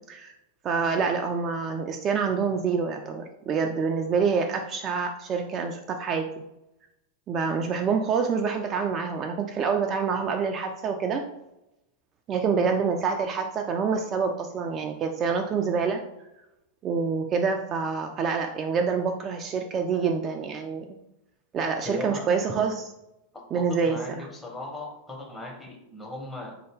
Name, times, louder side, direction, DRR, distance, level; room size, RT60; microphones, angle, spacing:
voice 1, 0.6-6.2 7.3-11.2 12.3-16.0 16.8-20.8 21.5-22.9 23.5-24.3, right 5 dB, 30° right, 4 dB, 0.3 m, -26 dB
voice 2, 21.8-22.3 23.3-26.6, left 2 dB, 10° left, 0 dB, 0.9 m, -38 dB
3.9 x 2.7 x 3.4 m, 0.91 s
figure-of-eight pair, 90°, 0 cm